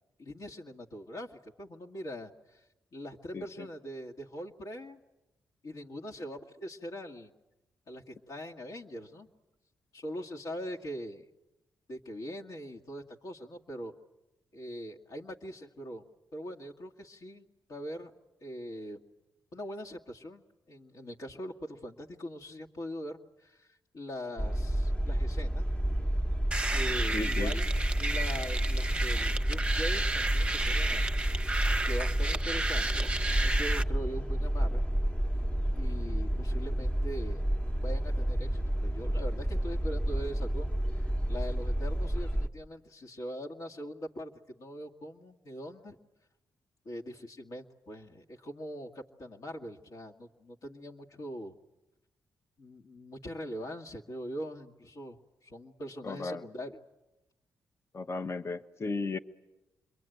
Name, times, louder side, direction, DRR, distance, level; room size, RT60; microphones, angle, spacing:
voice 1, 0.2-5.0 5.6-7.3 7.9-9.3 9.9-11.3 11.9-13.9 14.5-16.0 16.3-18.1 18.4-19.0 19.5-25.6 26.7-31.1 31.9-34.8 35.8-37.5 37.8-46.0 46.9-51.5 52.6-56.7, equal, 65° left, 0 dB, 1.9 m, -42 dB
voice 2, 3.3-3.7 27.1-27.5 56.0-56.4 57.9-59.2, left 3 dB, 45° left, 9 dB, 1.0 m, -35 dB
sound 1, 24.4-42.5, right 1 dB, 20° left, 1.2 m, -30 dB
sound 2, 26.5-33.8, right 2 dB, 15° right, 0.9 m, -33 dB
27.5 x 22.5 x 9.2 m, 0.98 s
supercardioid pair, 55°, 6 cm